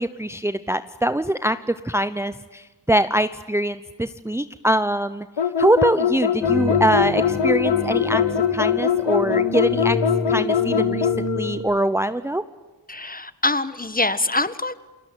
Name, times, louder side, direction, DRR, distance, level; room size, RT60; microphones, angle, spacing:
voice 1, 0.0-5.3 5.6-10.0 10.3-11.1 11.4-12.4, right 1 dB, 5° right, 12 dB, 0.8 m, -23 dB
sound 1, 5.4-11.2, left 8 dB, 85° left, 1.5 m, -21 dB
sound 2, 6.4-11.5, left 3 dB, 40° left, 4.9 m, -27 dB
voice 2, 12.9-14.7, left 2 dB, 20° left, 14 dB, 1.4 m, -24 dB
28.5 x 21.5 x 9.2 m, 1.2 s
cardioid pair, 70°, 42 cm